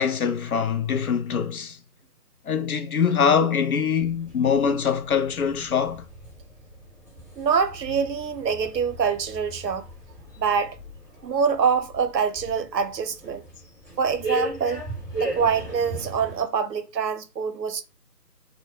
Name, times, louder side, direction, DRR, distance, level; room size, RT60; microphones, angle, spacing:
voice 1, 0.0-1.8 2.5-6.0, left 7 dB, 60° left, 0.5 m, -23 dB
sound 1, 4.0-16.4, right 1 dB, 10° left, 1.1 m, -38 dB
voice 2, 7.4-9.9 10.4-10.8 11.2-13.4 14.0-14.8 15.2-17.8, right 6 dB, 90° right, 0.6 m, -25 dB
2.1 x 2.0 x 3.1 m
figure-of-eight pair, 155°, 49 cm